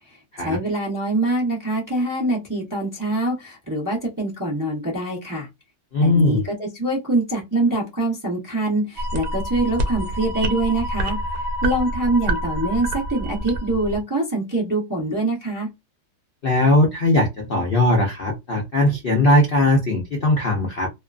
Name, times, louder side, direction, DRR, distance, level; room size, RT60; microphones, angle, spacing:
voice 1, 0.4-5.5 6.0-11.2 11.6-15.7, right 2 dB, 20° right, 0.5 m, -24 dB
voice 2, 5.9-6.4 16.4-20.9, left 1 dB, 85° left, 0.5 m, -19 dB
sound 1, 9.0-14.0, right 1 dB, 70° right, 0.8 m, -27 dB
2.9 x 2.3 x 2.4 m
omnidirectional pair, 1.9 m